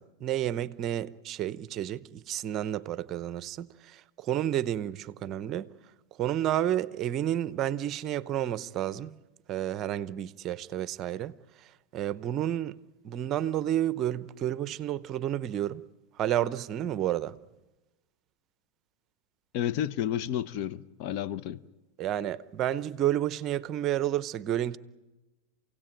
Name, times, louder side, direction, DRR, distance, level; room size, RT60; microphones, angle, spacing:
voice 1, 0.0-5.7 6.2-9.2 9.5-11.4 11.9-12.8 13.0-15.8 16.2-17.4 22.0-24.8, right 11 dB, 40° right, 0.8 m, -30 dB
voice 2, 19.5-21.6, left 10 dB, 55° left, 0.8 m, -31 dB
28.0 x 17.5 x 9.0 m
hypercardioid pair, 110°, 0 cm